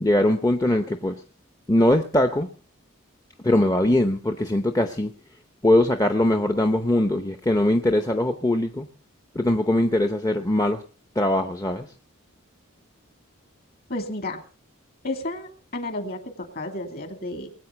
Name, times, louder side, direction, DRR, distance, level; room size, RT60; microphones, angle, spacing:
voice 1, 0.0-1.2 1.7-2.5 3.4-5.1 5.6-8.9 9.3-10.8 11.2-11.9, left 1 dB, 15° left, 0.7 m, -21 dB
voice 2, 13.9-14.4 15.0-17.5, left 2 dB, 45° left, 2.5 m, -32 dB
21.0 x 8.7 x 5.7 m
head